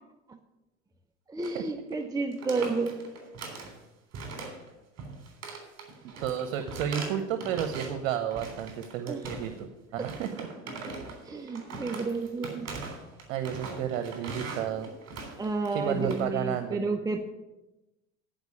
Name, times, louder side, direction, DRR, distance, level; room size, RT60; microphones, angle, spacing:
voice 1, 1.3-3.0 9.1-9.3 10.0-10.1 11.3-12.7 15.4-17.3, right 3 dB, 10° right, 6 dB, 0.7 m, -31 dB
sound 1, 1.4-1.7 1.9-2.1 2.3-3.8 4.1-4.7 5.0-8.0 8.3-9.6 10.0-16.2, right 3 dB, 40° right, 3.4 m, -40 dB
voice 2, 6.2-9.7 9.9-10.5 13.3-14.9 15.7-16.8, right 9 dB, 70° right, 8 dB, 1.0 m, -32 dB
10.5 x 5.1 x 8.3 m, 0.99 s
hypercardioid pair, 85°, 39 cm